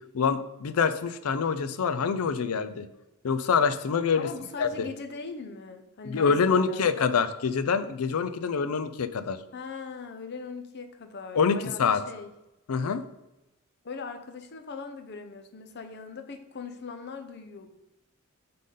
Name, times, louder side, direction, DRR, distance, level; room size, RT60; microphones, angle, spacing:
voice 1, 0.1-2.9 3.2-4.3 4.6-4.9 6.1-9.4 11.3-12.0 12.7-13.0, left 5 dB, 90° left, 12 dB, 0.5 m, -25 dB
voice 2, 4.1-7.1 9.5-12.3 13.8-17.8, left 4 dB, 50° left, 7 dB, 0.6 m, -40 dB
7.5 x 3.9 x 3.8 m, 0.96 s
head